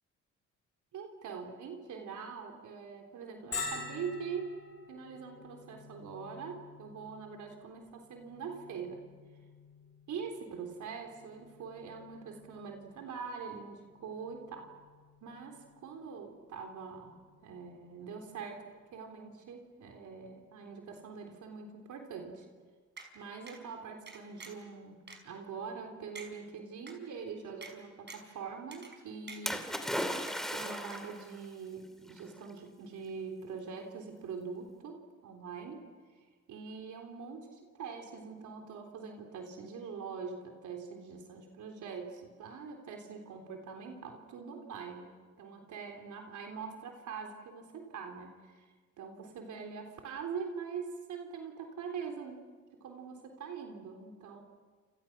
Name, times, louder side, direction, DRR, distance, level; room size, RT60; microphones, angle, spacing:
voice 1, 0.9-4.5 4.9-9.1 10.1-14.7 15.2-18.6 18.9-22.5 23.1-29.7 30.1-35.9 36.5-52.4 52.8-54.4, right 5 dB, 75° right, 4 dB, 3.7 m, -43 dB
Bell, 3.5-19.0, left 4 dB, 45° left, 7.8 m, -49 dB
sound 1, 23.0-23.1 23.5-23.6 24.1-24.7 25.1-25.2 25.7-25.8 26.1-26.3 26.9-27.0 27.6-27.7 28.1-28.3 28.7-29.0 29.3-29.8 30.2-30.7 30.9-31.0, right 4 dB, 35° right, 5.2 m, -48 dB
Splash splatter, 29.5-31.3 32.2-32.3, equal, ahead, 2.7 m, -35 dB
29.5 x 28.5 x 6.1 m, 1.4 s
cardioid pair, 90°, 30 cm